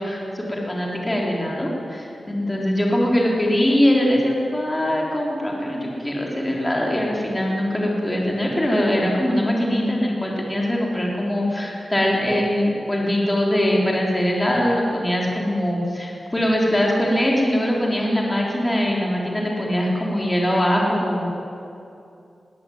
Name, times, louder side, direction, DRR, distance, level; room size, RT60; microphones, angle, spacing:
voice 1, 0.0-21.3, equal, 15° left, -2 dB, 3.7 m, -22 dB
21.5 x 17.0 x 9.4 m, 2.6 s
wide cardioid pair, 175°, 0 cm